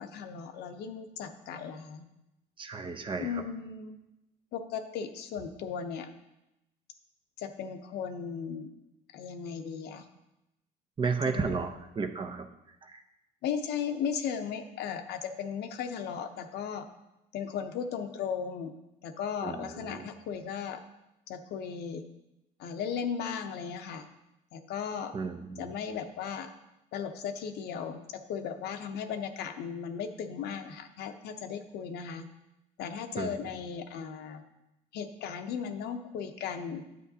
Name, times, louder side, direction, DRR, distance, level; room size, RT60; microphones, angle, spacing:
voice 1, 0.0-2.0 3.2-4.0 4.5-6.1 7.4-8.7 9.1-10.1 11.2-11.5 13.4-16.9 17.3-18.7 19.0-20.8 21.3-22.0 22.6-24.0 24.5-25.1 25.6-26.5 26.9-32.3 32.8-34.4 34.9-36.8, left 7 dB, 75° left, 7 dB, 0.7 m, -36 dB
voice 2, 2.6-3.3 11.0-12.5 12.9-13.0 19.4-20.0 25.1-25.8 33.2-33.4, right 4 dB, 30° right, 7 dB, 0.6 m, -33 dB
9.3 x 7.6 x 2.8 m, 0.92 s
cardioid pair, 110°, 17 cm